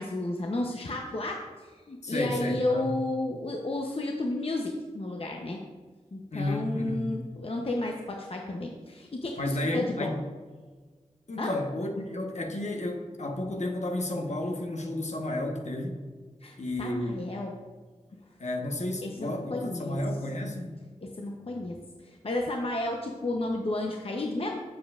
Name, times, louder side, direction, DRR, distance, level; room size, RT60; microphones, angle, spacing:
voice 1, 0.0-1.5 1.9-5.6 6.1-10.1 11.4-11.5 16.4-17.5 19.0-20.0 21.0-21.8 22.0-24.6, left 2 dB, 50° left, 1 dB, 0.7 m, -32 dB
voice 2, 2.0-2.9 6.3-7.1 9.4-10.2 11.3-16.0 16.6-17.2 18.4-20.8, left 1 dB, 65° left, 2 dB, 1.1 m, -32 dB
7.5 x 7.3 x 2.4 m, 1.4 s
cardioid pair, 40°, 13 cm